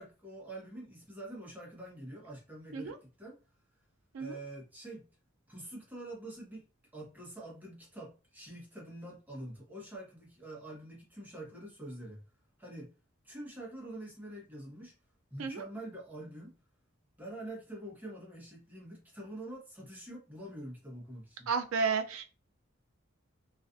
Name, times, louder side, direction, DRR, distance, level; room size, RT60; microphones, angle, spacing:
voice 1, 0.0-3.4 4.2-5.1 5.5-6.6 6.9-12.3 12.6-12.9 13.2-14.9 15.3-16.5 17.2-21.5, right 1 dB, 10° right, -3 dB, 0.8 m, -46 dB
voice 2, 21.5-22.2, right 5 dB, 90° right, 6 dB, 0.4 m, -32 dB
2.5 x 2.3 x 2.4 m, 0.32 s
head